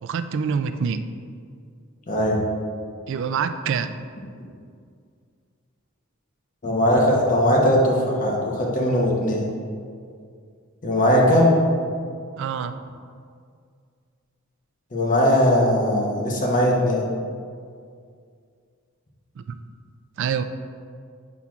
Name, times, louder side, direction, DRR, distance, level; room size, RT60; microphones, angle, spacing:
voice 1, 0.0-1.0 3.1-4.0 12.4-12.8 20.2-20.4, right 6 dB, 60° right, 10 dB, 0.3 m, -25 dB
voice 2, 2.1-2.4 6.6-9.4 10.8-11.6 14.9-17.0, equal, 40° left, -2 dB, 0.9 m, -19 dB
8.1 x 5.8 x 2.4 m, 2.2 s
head